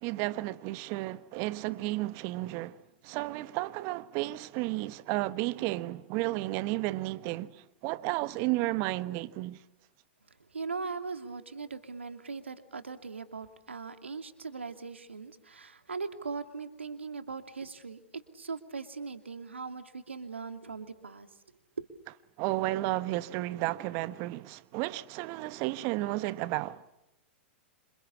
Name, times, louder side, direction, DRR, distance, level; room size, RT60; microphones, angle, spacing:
voice 1, 0.0-2.8 3.0-9.6 22.4-26.8, right 18 dB, 45° right, 1.3 m, -32 dB
voice 2, 10.5-18.0 18.3-21.3 21.8-21.9, right 4 dB, 85° right, 2.7 m, -39 dB
27.5 x 27.0 x 7.2 m
hypercardioid pair, 105°, 6 cm